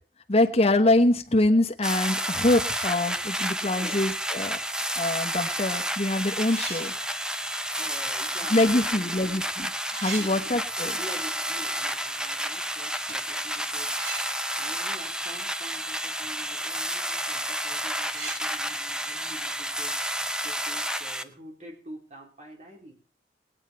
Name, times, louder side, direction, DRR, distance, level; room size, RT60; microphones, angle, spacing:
voice 1, 0.3-4.6 5.0-6.9 8.5-9.7 10.0-10.9, left 1 dB, 35° left, 4 dB, 1.1 m, -24 dB
sound 1, 1.8-21.2, right 1 dB, 5° right, 0.6 m, -31 dB
sound 2, 2.5-3.6 3.9-4.0 5.0-5.1 5.5-8.9 9.2-9.4 9.7-11.2 11.5-11.6 13.1-13.3 13.8-16.0 16.2-16.3 16.8-16.9 17.2-20.4, right 3 dB, 75° right, 5.2 m, -43 dB
voice 2, 7.8-9.4 10.2-10.6 11.0-22.9, right 1 dB, 40° right, 0 dB, 4.0 m, -46 dB
19.0 x 9.0 x 4.5 m, 0.40 s
head